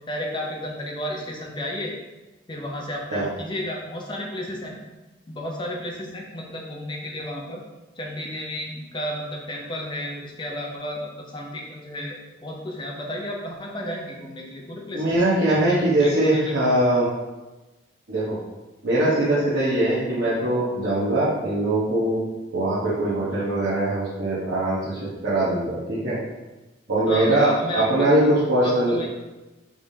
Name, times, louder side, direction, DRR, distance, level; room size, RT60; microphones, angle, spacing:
voice 1, 0.1-1.9 2.5-4.8 5.3-7.6 8.0-15.1 15.4-16.6 27.1-28.2 28.6-29.1, left 1 dB, 25° left, -1 dB, 0.6 m, -32 dB
voice 2, 14.9-17.1 18.1-18.4 18.8-22.2 22.5-26.2 26.9-29.0, right 1 dB, 70° right, -11 dB, 1.1 m, -22 dB
5.0 x 3.4 x 2.7 m, 1.1 s
head